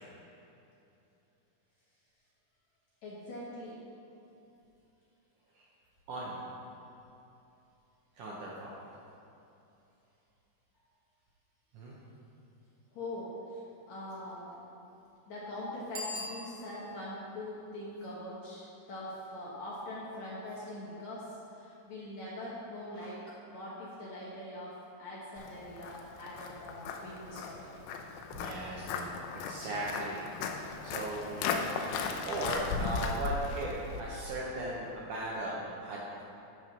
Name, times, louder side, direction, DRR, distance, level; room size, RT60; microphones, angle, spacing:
voice 1, 3.0-3.8 12.9-14.6 15.3-27.7, left 1 dB, 65° left, -7 dB, 1.9 m, -43 dB
voice 2, 8.2-8.7 11.7-12.0 22.9-23.1 28.3-30.2 30.8-31.5 32.3-36.2, right 1 dB, 70° right, -4 dB, 2.0 m, -37 dB
Bicycle bell, 15.9-17.1, left 1 dB, 45° right, 2.0 m, -41 dB
Walk footsteps, 25.4-34.0, left 5 dB, 80° left, 2.4 m, -37 dB
11.5 x 4.8 x 5.5 m, 2.9 s
omnidirectional pair, 4.6 m